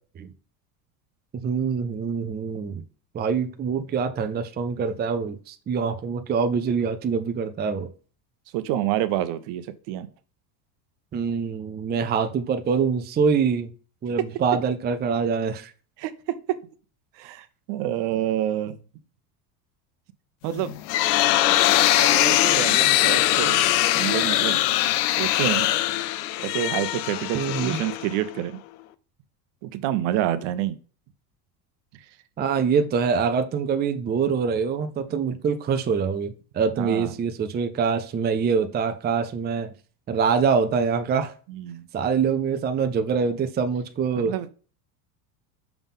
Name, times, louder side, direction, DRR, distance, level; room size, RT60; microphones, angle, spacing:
voice 1, 1.4-2.8 3.1-7.9 11.1-13.7 14.0-15.7 27.3-27.8 32.4-39.7 40.1-41.3 41.9-44.3, right 6 dB, 20° right, 0.5 m, -24 dB
voice 2, 8.5-10.1 16.0-16.1 16.5-16.6 17.2-18.8 20.4-20.7 21.7-23.7 23.9-24.6 25.1-25.8 26.4-28.6 29.6-30.8 36.8-37.1 41.5-41.9 44.1-44.5, right 12 dB, 60° right, 0.8 m, -28 dB
sound 1, 20.5-28.4, left 15 dB, 70° left, 0.7 m, -22 dB
5.9 x 3.6 x 5.4 m
supercardioid pair, 105°, 50 cm